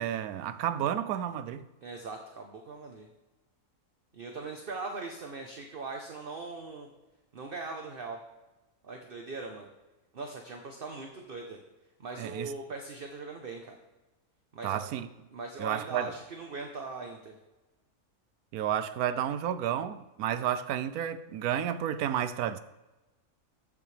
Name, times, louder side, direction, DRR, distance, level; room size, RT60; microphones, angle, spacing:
voice 1, 0.0-1.7 12.2-12.5 14.6-15.1 15.6-16.1 18.5-22.6, right 10 dB, 85° right, 1.1 m, -31 dB
voice 2, 1.8-3.1 4.1-6.9 7.3-8.2 8.8-9.7 10.1-11.6 12.0-13.8 14.5-14.8 15.3-17.4, right 3 dB, 45° right, 1.0 m, -40 dB
14.0 x 8.5 x 3.3 m
omnidirectional pair, 1.5 m